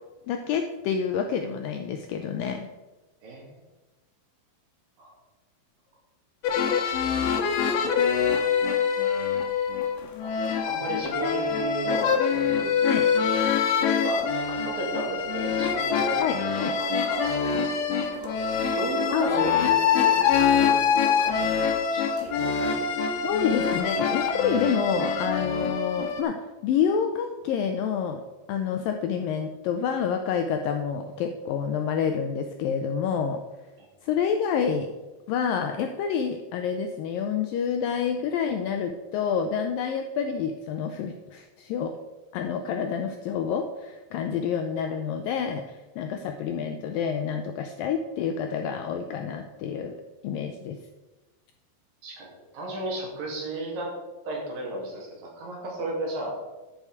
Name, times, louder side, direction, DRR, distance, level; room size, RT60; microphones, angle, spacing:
voice 1, 0.3-2.7 12.9-13.1 16.2-16.7 19.1-19.5 23.2-26.4 26.6-28.2 28.5-33.4 34.0-34.9 35.3-41.9 42.3-50.0 50.2-50.8, left 7 dB, 90° left, 5 dB, 2.0 m, -28 dB
voice 2, 3.2-3.6 5.0-5.2 7.1-7.2 10.2-12.7 13.3-16.2 16.4-18.3 18.8-21.5 21.9-22.9 23.4-23.5 44.3-44.4 52.0-53.9 54.3-56.3, right 1 dB, 60° right, -1 dB, 3.7 m, -35 dB
sound 1, 6.4-26.2, left 6 dB, 70° left, 2.3 m, -25 dB
12.5 x 5.7 x 4.7 m, 1.1 s
omnidirectional pair, 4.7 m